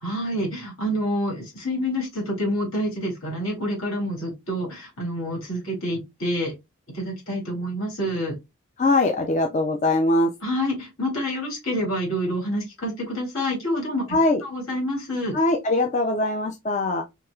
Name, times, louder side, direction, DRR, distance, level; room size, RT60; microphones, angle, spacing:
voice 1, 0.0-6.5 6.9-8.4 10.4-14.1 14.4-15.3, equal, 75° left, 2.5 m, -27 dB
voice 2, 8.8-10.3 14.1-14.4 15.3-17.0, left 2 dB, 35° left, 0.4 m, -21 dB
4.5 x 2.8 x 2.3 m
head